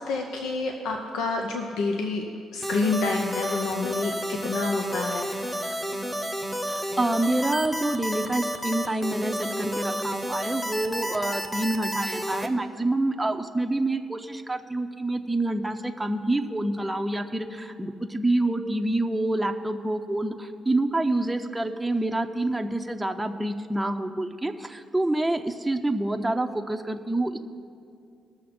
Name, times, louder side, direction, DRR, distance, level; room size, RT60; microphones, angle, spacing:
voice 1, 0.0-2.3 2.5-5.8, left 3 dB, 85° left, 2 dB, 0.8 m, -28 dB
sound 1, 2.6-12.5, equal, 10° left, 1.0 m, -31 dB
voice 2, 7.0-27.4, right 2 dB, 10° right, 4 dB, 0.6 m, -27 dB
19.5 x 6.5 x 4.3 m, 2.4 s
cardioid pair, 90°, 0 cm